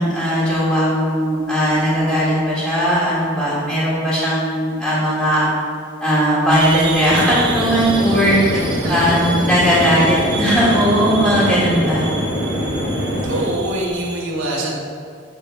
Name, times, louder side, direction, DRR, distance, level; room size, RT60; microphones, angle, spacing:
voice 1, 0.0-5.5 6.0-8.4 8.9-12.0, equal, ahead, -9 dB, 2.1 m, -18 dB
sound 1, 6.5-14.2, right 4 dB, 25° right, 1.1 m, -30 dB
sound 2, 7.1-13.4, equal, 40° left, 1.8 m, -23 dB
voice 2, 8.8-9.2 13.2-14.8, right 1 dB, 85° right, -4 dB, 1.9 m, -24 dB
9.1 x 4.4 x 5.6 m, 2.3 s
head